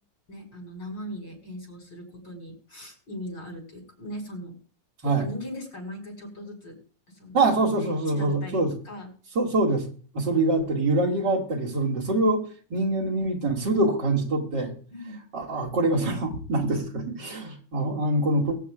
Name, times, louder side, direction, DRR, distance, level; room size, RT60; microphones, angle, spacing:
voice 1, 0.3-4.6 5.0-6.8 7.1-7.4 7.8-9.1 14.9-15.2, equal, 85° left, 1 dB, 5.6 m, -39 dB
voice 2, 7.3-8.7 9.3-9.9 10.1-12.4 12.7-14.7 15.3-18.6, right 2 dB, 75° right, -2 dB, 3.0 m, -24 dB
22.5 x 8.6 x 2.5 m, 0.42 s
omnidirectional pair, 2.0 m